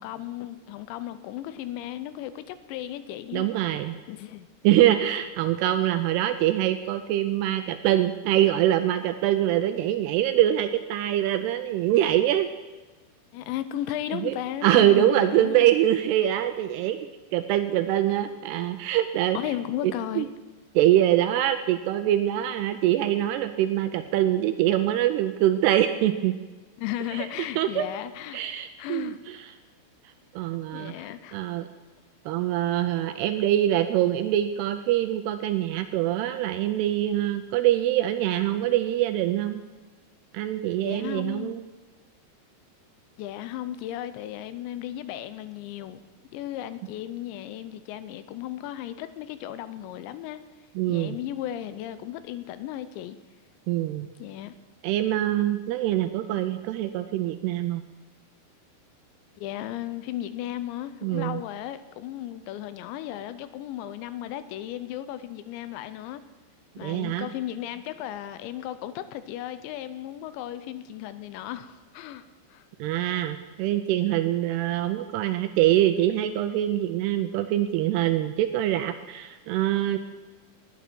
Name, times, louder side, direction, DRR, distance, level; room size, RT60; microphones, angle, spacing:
voice 1, 0.0-3.7 4.1-5.1 13.3-15.7 19.3-20.3 26.8-28.4 28.8-29.2 30.7-31.4 40.8-41.6 43.2-46.0 46.3-50.4 50.9-53.2 54.2-54.5 59.4-66.2 66.8-72.7, left 12 dB, 90° left, 12 dB, 3.0 m, -35 dB
voice 2, 3.3-4.0 4.6-12.5 14.1-14.4 14.6-17.0 17.3-19.4 19.8-20.3 20.8-26.3 27.1-27.3 27.6-27.9 28.3-29.4 30.4-30.9 31.3-31.7 32.3-39.6 40.3-41.6 50.8-51.2 53.7-54.1 54.8-57.8 61.0-61.4 66.8-67.3 72.8-80.0, right 12 dB, 85° right, 9 dB, 2.4 m, -24 dB
19.0 x 9.3 x 4.6 m, 1.3 s
omnidirectional pair, 5.1 m